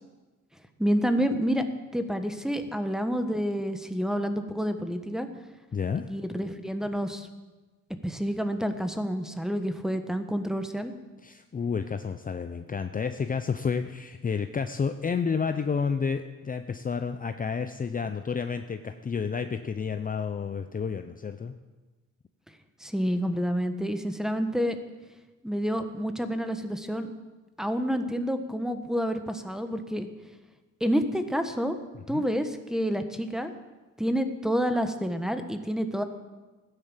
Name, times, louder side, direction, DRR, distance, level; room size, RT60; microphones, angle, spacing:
voice 1, 0.8-1.6 1.9-5.3 6.0-7.3 8.0-10.9 22.8-24.8 25.4-27.1 27.6-30.1 30.8-31.8 32.1-33.5 34.0-36.0, equal, ahead, 8 dB, 1.4 m, -28 dB
voice 2, 5.7-6.0 11.2-21.5 32.1-32.2, left 6 dB, 30° left, 8 dB, 0.7 m, -30 dB
14.5 x 10.5 x 7.4 m, 1.2 s
cardioid pair, 90°, 30 cm